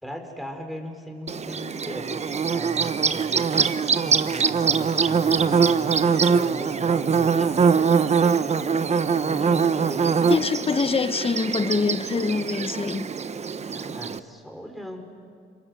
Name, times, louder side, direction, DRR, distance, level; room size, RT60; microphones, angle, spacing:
voice 1, 0.0-5.9 6.3-10.4 13.7-15.0, equal, ahead, 4.4 m, -39 dB
Bird / Buzz, 1.3-14.2, right 6 dB, 35° right, 0.9 m, -23 dB
voice 2, 10.3-13.1, left 4 dB, 30° left, 1.0 m, -25 dB
27.5 x 26.0 x 7.8 m
cardioid pair, 90°, 20 cm